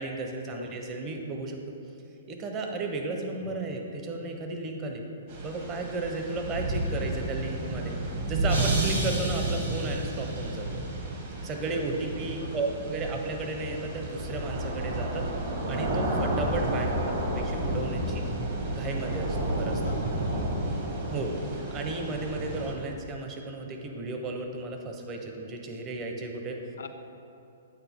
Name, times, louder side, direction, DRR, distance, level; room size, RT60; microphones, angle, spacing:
voice 1, 0.0-1.6 2.3-5.0 5.4-7.9 8.3-10.8 11.4-15.2 15.7-16.9 17.3-18.3 18.7-19.8 21.0-26.6, right 3 dB, 25° right, 3 dB, 0.6 m, -34 dB
sound 1, 5.3-22.7, right 1 dB, 45° right, 1.1 m, -31 dB
sound 2, 8.5-10.6, right 2 dB, 85° right, 1.3 m, -35 dB
voice 2, 16.9-17.2 19.8-20.3 26.8-26.9, left 6 dB, 85° left, 8 dB, 0.4 m, -44 dB
8.1 x 4.2 x 3.5 m, 2.7 s
hypercardioid pair, 150°, 0 cm